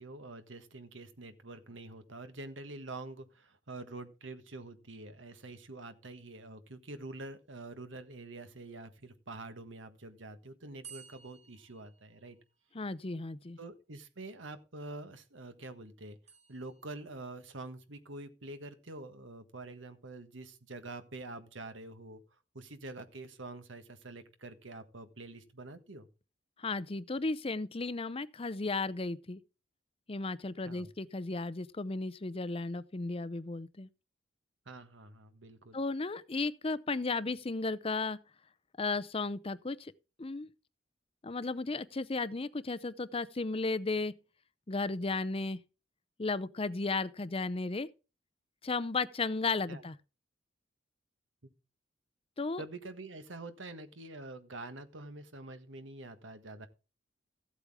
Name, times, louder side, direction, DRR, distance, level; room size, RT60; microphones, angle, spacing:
voice 1, 0.0-12.4 13.6-16.2 16.5-22.2 22.5-26.1 30.6-30.9 34.6-35.8 49.7-49.8 52.6-56.7, right 2 dB, 75° right, 1.5 m, -46 dB
sound 1, 10.8-12.8 16.3-17.3, right 8 dB, 35° right, 2.0 m, -55 dB
voice 2, 12.7-13.6 26.6-29.4 30.1-33.9 35.7-38.2 38.8-39.9 40.2-40.5 41.2-44.1 44.7-45.6 46.2-47.9 48.6-49.9 52.4-52.6, left 3 dB, 30° left, 0.6 m, -34 dB
15.0 x 8.2 x 3.6 m
head